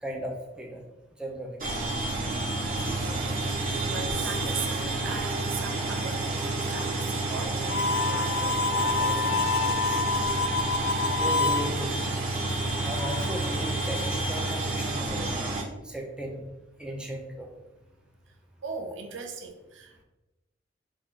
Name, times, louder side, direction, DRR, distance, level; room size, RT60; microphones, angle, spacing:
voice 1, 0.0-0.8 1.2-1.6 3.1-3.2 11.1-12.1 12.8-15.3 15.8-16.4 16.8-17.5, equal, 5° right, 0 dB, 0.5 m, -36 dB
sound 1, 1.6-15.6, right 2 dB, 45° right, 1.0 m, -29 dB
voice 2, 2.7-10.1 12.7-12.9 18.6-20.0, right 4 dB, 75° right, 4 dB, 0.6 m, -39 dB
Harmonica, 7.7-11.7, left 4 dB, 60° left, 0.4 m, -27 dB
4.2 x 2.4 x 4.3 m, 1.0 s
head